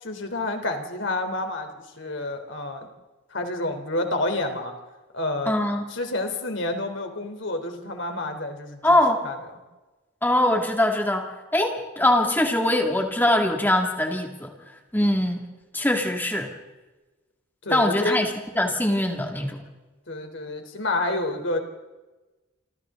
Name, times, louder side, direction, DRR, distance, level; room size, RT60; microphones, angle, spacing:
voice 1, 0.0-2.9 3.3-4.7 5.1-5.5 5.9-8.8 9.2-9.4 17.6-18.2 20.1-21.6, left 2 dB, 60° left, 5 dB, 3.4 m, -29 dB
voice 2, 5.5-5.8 8.8-9.2 10.2-14.5 14.9-15.5 15.7-16.5 17.7-19.6, left 1 dB, 10° left, 2 dB, 2.2 m, -22 dB
27.5 x 27.0 x 3.8 m, 1.2 s
head